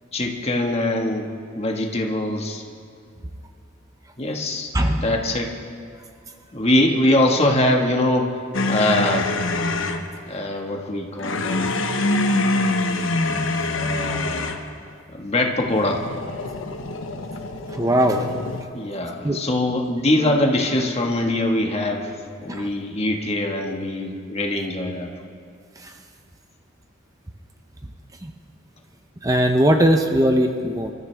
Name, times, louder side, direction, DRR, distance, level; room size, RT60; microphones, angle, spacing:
voice 1, 0.1-1.3 1.6-2.6 4.2-4.7 5.0-5.5 6.5-8.3 8.7-9.3 10.3-11.7 13.7-14.6 15.1-16.0 18.7-22.1 22.4-25.1, left 1 dB, 35° left, 1 dB, 1.6 m, -22 dB
voice 2, 4.7-5.0 17.7-18.3 19.2-19.4 22.5-22.7 28.2-28.3 29.2-30.9, equal, 20° right, 5 dB, 0.7 m, -19 dB
sound 1, 8.5-10.1 11.2-14.7 15.6-18.6, left 2 dB, 90° left, 1.1 m, -25 dB
26.0 x 14.0 x 3.4 m, 2.4 s
head